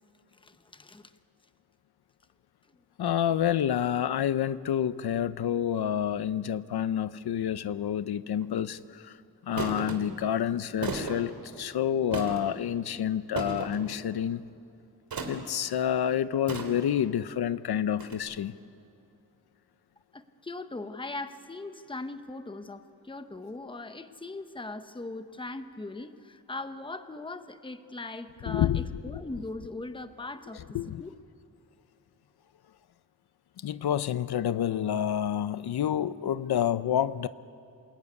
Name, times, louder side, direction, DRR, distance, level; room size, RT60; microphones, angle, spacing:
voice 1, 0.4-1.1 20.1-31.1, left 2 dB, 15° left, 9 dB, 0.9 m, -40 dB
voice 2, 3.0-9.2 9.4-14.4 15.3-18.5 28.4-29.2 30.5-31.0 33.6-37.3, left 9 dB, 90° left, 14 dB, 0.7 m, -28 dB
sound 1, 8.4-8.6 9.6-10.0 10.8-11.2 12.1-12.5 13.4-13.8 15.1-15.5 16.5-17.0 18.0-18.1, right 4 dB, 65° right, 3.1 m, -34 dB
28.0 x 20.0 x 9.7 m, 2.5 s
wide cardioid pair, 165°, 37 cm